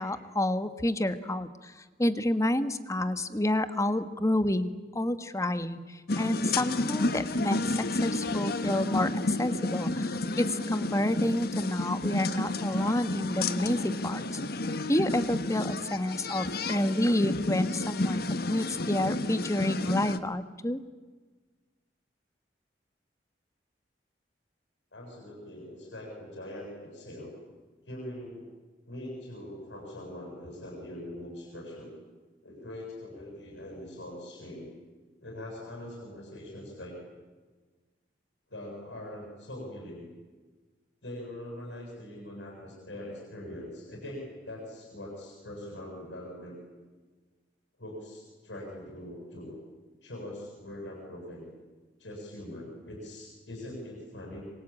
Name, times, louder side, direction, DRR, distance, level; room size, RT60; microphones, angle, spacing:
voice 1, 0.0-14.4 14.9-18.2 18.5-20.8, left 1 dB, 15° left, 11 dB, 1.4 m, -29 dB
sound 1, 6.1-20.2, left 2 dB, 60° left, 1.4 m, -31 dB
voice 2, 24.9-27.3 27.8-28.4 28.9-31.9 32.4-34.7 35.2-37.0 38.5-40.1 41.0-46.6 47.8-49.6 50.0-51.5 52.0-54.4, left 1 dB, 80° left, 0 dB, 7.7 m, -42 dB
26.5 x 24.5 x 8.8 m, 1.3 s
head